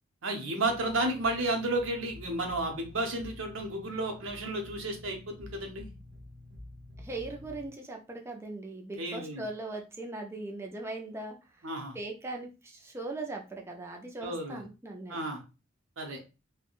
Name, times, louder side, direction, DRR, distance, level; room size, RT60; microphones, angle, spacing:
voice 1, 0.2-5.9 9.0-9.4 11.6-12.0 14.2-14.6 15.1-15.4 16.0-16.2, right 2 dB, 80° right, 3 dB, 0.8 m, -32 dB
sound 1, 0.6-7.7, left 1 dB, 50° right, 0.9 m, -49 dB
voice 2, 7.0-15.2, right 2 dB, 15° right, 1 dB, 0.4 m, -40 dB
3.4 x 2.2 x 2.3 m, 0.29 s
head